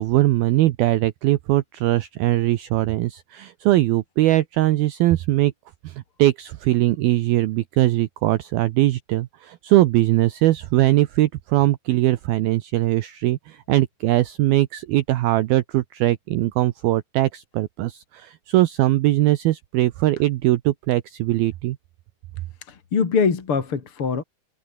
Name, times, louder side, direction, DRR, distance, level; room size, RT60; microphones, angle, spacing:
voice 1, 0.0-5.5 5.8-21.8, right 16 dB, 80° right, 2.2 m, -21 dB
voice 2, 22.7-24.2, left 5 dB, 35° left, 2.7 m, -23 dB
omnidirectional pair, 5.4 m